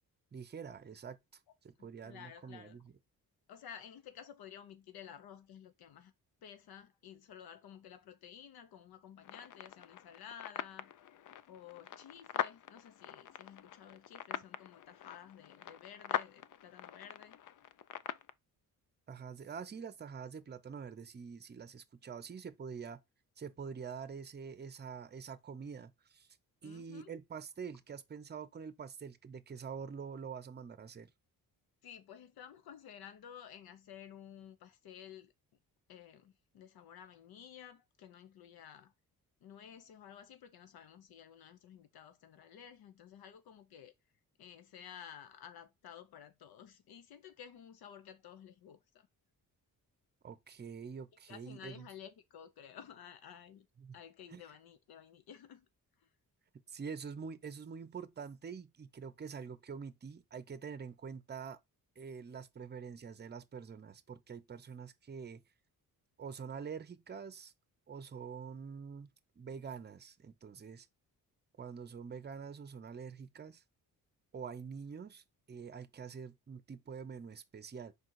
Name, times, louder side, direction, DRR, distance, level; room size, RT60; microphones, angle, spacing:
voice 1, 0.3-2.8 19.1-23.0 23.4-26.3 26.6-31.1 50.2-51.9 53.8-54.0 54.3-54.4 56.7-61.6 62.0-65.4 66.2-67.5 67.9-69.1 69.4-70.9 71.6-73.6 74.3-77.9, right 6 dB, 30° right, 0.6 m, -46 dB
voice 2, 1.8-2.8 3.5-6.1 6.4-10.9 11.5-17.4 26.6-27.1 31.8-35.3 35.9-38.9 39.4-43.9 44.4-49.1 51.3-53.7 53.9-55.7 56.0-56.1, left 9 dB, 80° left, 0.8 m, -53 dB
sound 1, 9.2-18.3, left 10 dB, 55° left, 0.5 m, -43 dB
5.2 x 3.9 x 4.6 m
cardioid pair, 130°, 36 cm